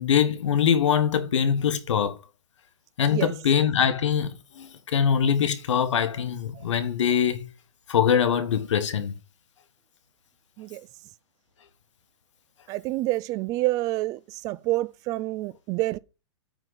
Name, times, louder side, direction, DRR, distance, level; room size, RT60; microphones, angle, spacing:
voice 1, 0.0-2.2 3.0-7.5 7.9-9.1, left 8 dB, 85° left, 1.5 m, -23 dB
voice 2, 12.7-14.2 14.4-16.0, right 18 dB, 25° right, 0.4 m, -27 dB
8.9 x 3.9 x 6.9 m
hypercardioid pair, 150°, 15 cm